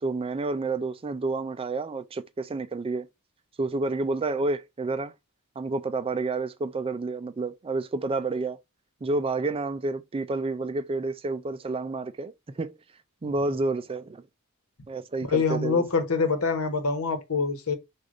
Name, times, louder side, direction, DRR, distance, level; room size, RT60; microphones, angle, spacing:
voice 1, 0.0-3.1 3.6-5.1 5.6-8.6 9.0-12.8 13.2-14.2 14.9-15.8, right 3 dB, 25° right, 0.4 m, -29 dB
voice 2, 15.3-17.7, left 4 dB, 70° left, 1.1 m, -25 dB
4.9 x 2.5 x 3.8 m
head